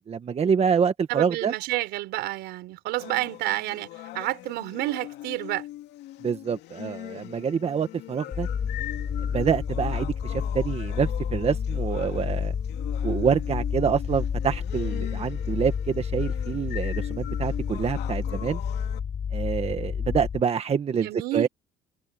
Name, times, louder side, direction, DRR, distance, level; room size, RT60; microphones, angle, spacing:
voice 1, 0.1-1.5 6.2-8.5 9.3-12.5 13.0-18.6 19.3-21.5, right 7 dB, 35° right, 1.5 m, -26 dB
voice 2, 1.1-3.9 4.1-5.6 20.9-21.5, right 18 dB, 90° right, 4.9 m, -29 dB
sound 1, 3.0-19.0, left 15 dB, 85° left, 2.6 m, -41 dB
generator room, 8.3-20.4, left 7 dB, 45° left, 5.0 m, -30 dB
cardioid pair, 110°, 17 cm